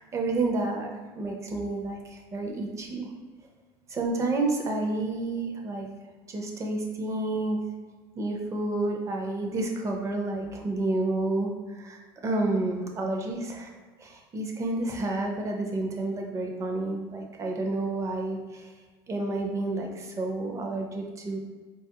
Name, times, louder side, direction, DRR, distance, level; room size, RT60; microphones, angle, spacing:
voice 1, 0.0-3.1 3.9-5.9 6.3-7.6 8.1-13.7 14.0-18.7 19.1-21.4, right 2 dB, 25° right, 2 dB, 0.4 m, -30 dB
3.7 x 2.3 x 2.8 m, 1.4 s
cardioid pair, 145°, 12 cm